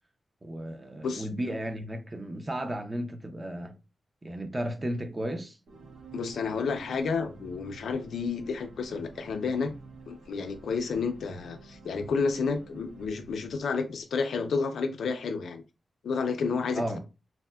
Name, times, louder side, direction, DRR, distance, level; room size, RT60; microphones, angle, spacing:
voice 1, 0.4-3.7 4.2-5.6 16.7-17.0, right 1 dB, 20° right, 0.4 m, -34 dB
sound 1, 5.7-14.1, right 3 dB, 75° right, 0.8 m, -50 dB
voice 2, 6.1-9.7 10.1-15.6 16.0-17.0, left 5 dB, 90° left, 0.4 m, -30 dB
4.1 x 2.0 x 2.2 m
wide cardioid pair, 165°, 0 cm